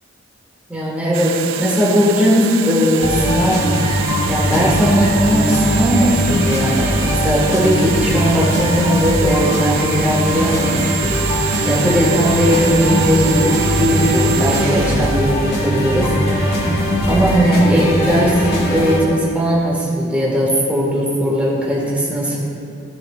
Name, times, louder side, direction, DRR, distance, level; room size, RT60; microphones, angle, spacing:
voice 1, 0.7-3.7 4.3-11.2 11.6-16.2 17.1-22.4, equal, 5° right, -5 dB, 1.9 m, -18 dB
sound 1, 1.1-16.4, right 7 dB, 80° right, 0.5 m, -26 dB
sound 2, 3.0-19.0, equal, 50° left, 2.1 m, -20 dB
18.0 x 6.6 x 2.6 m, 2.7 s
head